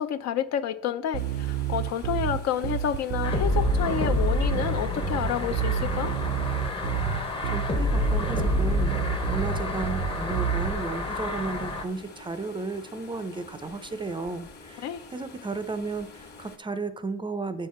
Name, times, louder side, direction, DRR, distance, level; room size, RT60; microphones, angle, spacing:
voice 1, 0.0-6.1 14.8-15.0, left 9 dB, 55° left, 0.6 m, -29 dB
sound 1, 1.1-16.6, left 3 dB, 35° left, 1.4 m, -48 dB
Bass guitar, 1.1-10.7, right 11 dB, 80° right, 0.6 m, -29 dB
sound 2, 3.2-11.9, left 2 dB, 15° left, 0.8 m, -28 dB
voice 2, 7.4-17.7, right 3 dB, 15° right, 0.5 m, -34 dB
7.8 x 5.6 x 4.3 m
cardioid pair, 110°, 31 cm